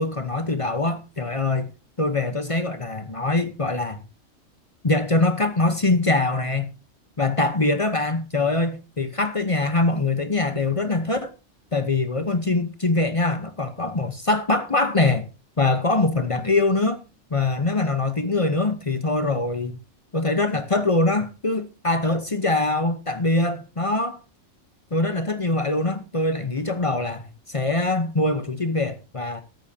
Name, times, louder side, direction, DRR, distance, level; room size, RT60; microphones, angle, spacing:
voice 1, 0.0-1.7 2.0-4.0 4.8-6.7 7.2-11.3 11.7-15.3 15.6-17.0 17.3-19.8 20.1-24.2 24.9-29.4, left 2 dB, 30° left, 0.9 m, -23 dB
14.0 x 13.0 x 2.8 m
omnidirectional pair, 1.4 m